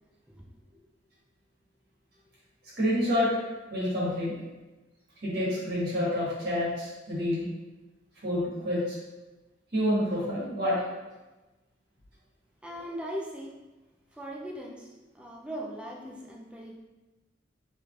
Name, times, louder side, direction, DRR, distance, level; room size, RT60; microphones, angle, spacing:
voice 1, 2.8-3.3 3.7-4.4 5.2-7.5 8.2-9.0 9.7-10.8 12.7-12.8, left 1 dB, 55° right, -8 dB, 1.4 m, -28 dB
voice 2, 12.6-13.6 14.1-16.8, equal, 5° right, -1 dB, 0.4 m, -39 dB
3.4 x 3.0 x 2.4 m, 1.1 s
head